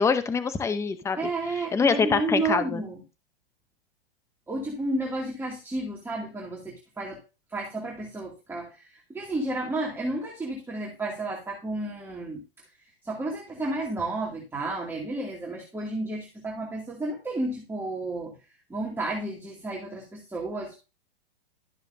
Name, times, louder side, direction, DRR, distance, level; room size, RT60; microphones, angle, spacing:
voice 1, 0.0-1.2 1.5-2.8, left 5 dB, 10° left, 11 dB, 0.8 m, -25 dB
voice 2, 1.2-3.0 4.5-7.2 7.5-12.4 13.0-18.3 18.7-20.7, right 2 dB, 10° right, -2 dB, 2.5 m, -32 dB
13.0 x 6.8 x 2.7 m, 0.29 s
hypercardioid pair, 120°, 30 cm